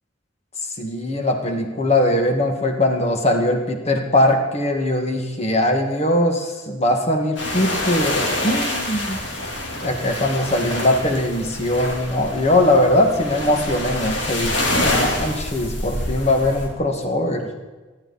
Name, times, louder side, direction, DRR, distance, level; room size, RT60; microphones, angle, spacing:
voice 1, 0.8-9.2 9.8-17.5, left 1 dB, 35° left, 3 dB, 2.0 m, -21 dB
sound 1, 7.4-16.7, left 1 dB, 70° left, 3.5 m, -26 dB
25.0 x 11.5 x 4.3 m, 1.3 s
head